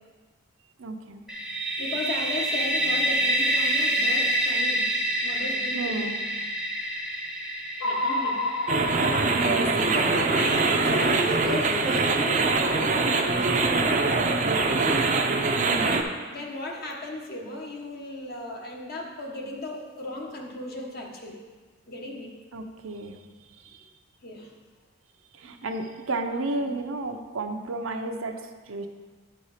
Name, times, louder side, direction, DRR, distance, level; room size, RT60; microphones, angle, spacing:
voice 1, 0.8-1.2 5.7-6.2 9.3-10.1 15.6-16.0 22.5-23.2 23.6-23.8 25.3-28.9, right 2 dB, 75° right, 5 dB, 0.7 m, -32 dB
sound 1, 1.3-11.0, right 1 dB, 5° right, 0.7 m, -28 dB
voice 2, 1.8-4.9 5.2-6.1 7.8-8.4 9.8-15.0 16.3-21.4 21.9-22.3 24.2-24.5 26.3-26.7, left 1 dB, 45° left, 0 dB, 1.2 m, -35 dB
sound 2, 7.8-12.1, left 1 dB, 90° left, 0.7 m, -31 dB
sound 3, 8.7-16.0, right 3 dB, 35° right, 0.5 m, -23 dB
10.0 x 4.3 x 4.9 m, 1.4 s
head